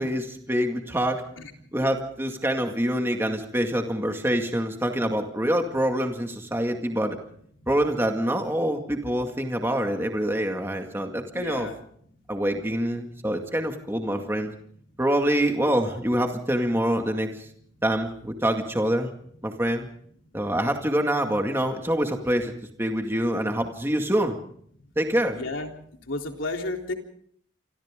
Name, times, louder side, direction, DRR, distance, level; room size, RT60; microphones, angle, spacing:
voice 1, 0.0-1.2 1.7-7.2 7.7-11.7 12.3-14.5 15.0-17.5 17.8-19.1 19.4-19.9 20.3-22.5 22.8-24.4 25.0-25.4, equal, 10° right, 4 dB, 2.1 m, -25 dB
voice 2, 11.3-11.8 25.3-25.7 26.1-26.9, left 2 dB, 90° left, 3 dB, 3.7 m, -32 dB
27.5 x 26.0 x 3.8 m, 0.62 s
head